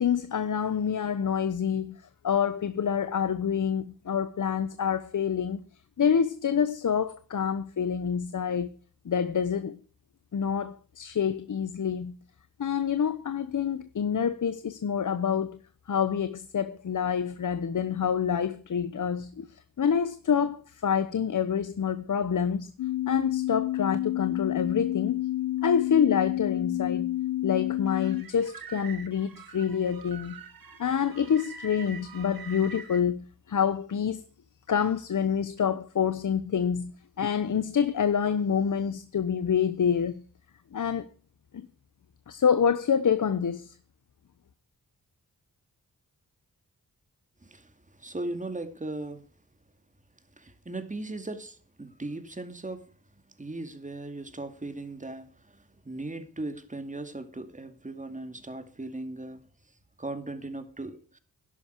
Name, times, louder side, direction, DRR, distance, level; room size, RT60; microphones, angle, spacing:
voice 1, 0.0-2.0 2.2-5.6 6.0-8.7 9.0-9.8 10.3-12.1 12.6-15.6 15.9-19.5 19.8-22.7 23.1-25.2 25.6-27.1 27.4-30.4 30.8-34.2 34.7-36.9 37.2-40.2 40.7-41.1 41.5-41.7 42.3-43.8, left 7 dB, 60° left, 1.0 m, -27 dB
sound 1, 22.8-28.2, left 15 dB, 85° left, 0.5 m, -29 dB
sound 2, 27.9-33.0, right 5 dB, 75° right, 2.0 m, -45 dB
voice 2, 47.4-49.2 50.4-52.9 53.4-59.4 60.0-61.2, right 2 dB, 20° right, 2.3 m, -38 dB
13.5 x 11.0 x 4.6 m
cardioid pair, 80°, 36 cm